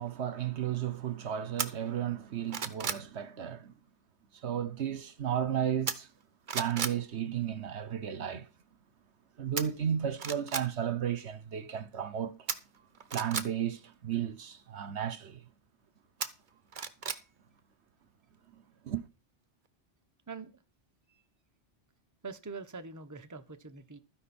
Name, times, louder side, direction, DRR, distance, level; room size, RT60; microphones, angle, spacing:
voice 1, 0.0-3.7 4.3-6.1 6.5-8.5 9.4-12.5 13.1-15.4 18.8-19.0, right 9 dB, 70° right, 1.2 m, -34 dB
sound 1, 1.6-1.7 2.2-3.1 5.9-6.2 6.5-7.0 9.6-9.7 10.2-10.7 12.5-13.5 16.2-17.2 17.6-17.7, right 6 dB, 45° right, 1.0 m, -34 dB
voice 2, 20.3-20.6 21.1-21.2 22.2-24.0, right 4 dB, 15° right, 1.0 m, -44 dB
13.0 x 10.0 x 4.3 m
omnidirectional pair, 1.2 m